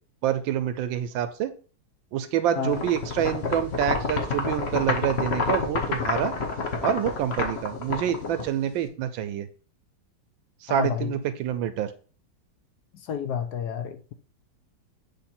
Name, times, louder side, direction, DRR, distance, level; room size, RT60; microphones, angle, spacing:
voice 1, 0.2-1.5 2.1-6.3 6.8-9.5 10.6-11.9, right 10 dB, 85° right, 1.4 m, -27 dB
sound 1, 2.7-8.8, left 4 dB, 45° left, 0.9 m, -29 dB
voice 2, 10.7-11.1 12.9-14.1, left 7 dB, 65° left, 1.1 m, -30 dB
8.0 x 3.2 x 4.3 m
omnidirectional pair, 2.1 m